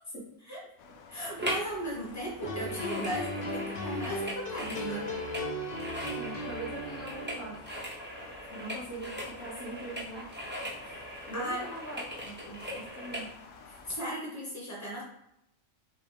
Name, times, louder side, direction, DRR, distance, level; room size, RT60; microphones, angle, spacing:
sound 1, 0.8-13.9, left 4 dB, 85° left, 1.1 m, -52 dB
voice 1, 1.1-5.1 10.8-11.6 13.7-15.0, equal, 10° left, -5 dB, 1.5 m, -37 dB
sound 2, 1.4-1.7 2.0-13.3 13.8-13.9, equal, 10° right, 0.7 m, -40 dB
sound 3, 2.4-7.6, left 1 dB, 50° left, 0.8 m, -37 dB
voice 2, 6.2-7.7 8.5-10.3 11.3-13.3, right 2 dB, 65° left, -3 dB, 1.3 m, -42 dB
5.9 x 2.5 x 3.5 m, 0.82 s
omnidirectional pair, 1.4 m